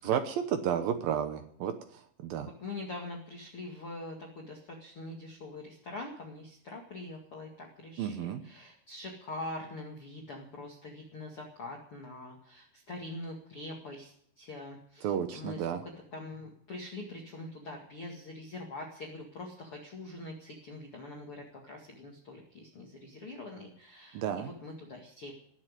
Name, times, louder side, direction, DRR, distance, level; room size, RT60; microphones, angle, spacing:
voice 1, 0.0-1.7 2.2-2.5 8.0-8.4 15.0-15.8 24.1-24.5, right 9 dB, 75° right, 8 dB, 2.1 m, -31 dB
voice 2, 2.6-25.3, left 2 dB, 45° left, 0 dB, 2.0 m, -44 dB
20.0 x 7.6 x 9.5 m, 0.64 s
omnidirectional pair, 5.3 m